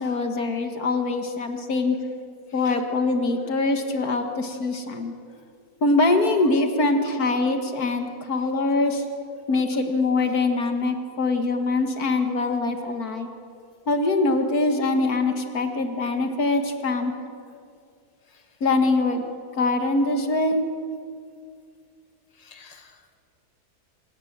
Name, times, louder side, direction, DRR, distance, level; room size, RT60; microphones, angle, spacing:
voice 1, 0.0-2.0 2.5-5.1 5.8-9.1 9.5-13.3 13.9-17.1 18.6-19.3 19.6-20.6, left 3 dB, 70° left, 6 dB, 2.1 m, -23 dB
voice 2, 2.5-2.8 18.3-18.5 22.3-23.2, left 5 dB, 25° left, 5 dB, 1.9 m, -51 dB
26.5 x 18.0 x 7.4 m, 2.2 s
omnidirectional pair, 1.7 m